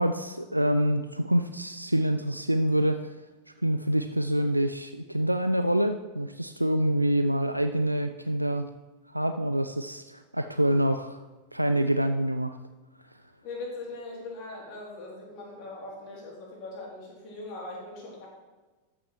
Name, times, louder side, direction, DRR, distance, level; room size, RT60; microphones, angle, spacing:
voice 1, 0.0-3.2 3.6-8.7 9.1-11.2 11.5-12.6, right 1 dB, 90° right, 8 dB, 0.3 m, -26 dB
voice 2, 13.4-18.3, left 2 dB, 40° left, -3 dB, 3.2 m, -40 dB
13.0 x 6.0 x 3.2 m, 1.2 s
figure-of-eight pair, 90°, 0 cm